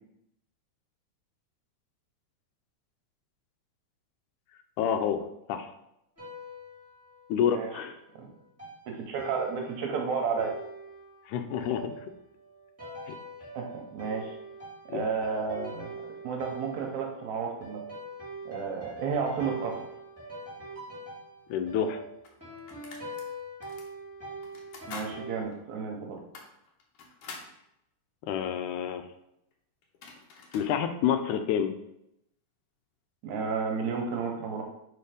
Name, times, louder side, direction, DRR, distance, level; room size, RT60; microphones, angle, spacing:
voice 1, 4.8-5.2 5.5-5.7 7.3-8.0 11.3-11.9 13.1-13.2 14.9-15.0 21.5-22.0 28.3-29.0 30.5-31.7, left 8 dB, 80° left, 7 dB, 2.0 m, -28 dB
sound 1, 6.2-7.7 8.6-25.4, right 2 dB, 5° right, 1.4 m, -43 dB
voice 2, 8.9-10.5 13.5-14.4 14.9-17.8 18.5-19.9 24.9-26.2 33.2-34.6, right 5 dB, 75° right, 2 dB, 2.2 m, -32 dB
sound 2, 21.5-21.6 22.2-23.3 23.6-23.9 24.4-25.1 25.5-25.6 26.2-27.5 29.5-29.6 29.8-30.7, left 4 dB, 65° left, 1.7 m, -46 dB
4.7 x 4.4 x 5.1 m, 0.81 s
omnidirectional pair, 3.5 m